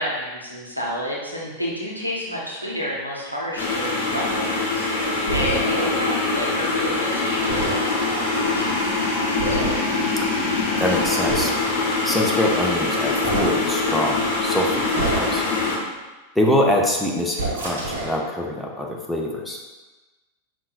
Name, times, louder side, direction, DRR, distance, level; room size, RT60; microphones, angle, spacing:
voice 1, 0.0-9.6, equal, 90° right, -5 dB, 0.8 m, -30 dB
sound 1, 3.6-15.8, left 3 dB, 50° left, 0.8 m, -23 dB
sound 2, 5.3-5.6 7.4-7.8 9.4-9.8 10.8-11.5 13.1-13.5 14.9-15.5 17.3-18.2, right 2 dB, 65° right, 1.0 m, -27 dB
voice 2, 10.8-11.7 12.0-15.4 16.4-19.6, left 1 dB, 5° left, -1 dB, 0.5 m, -24 dB
5.4 x 2.6 x 2.3 m, 1.2 s
figure-of-eight pair, 90°, 0 cm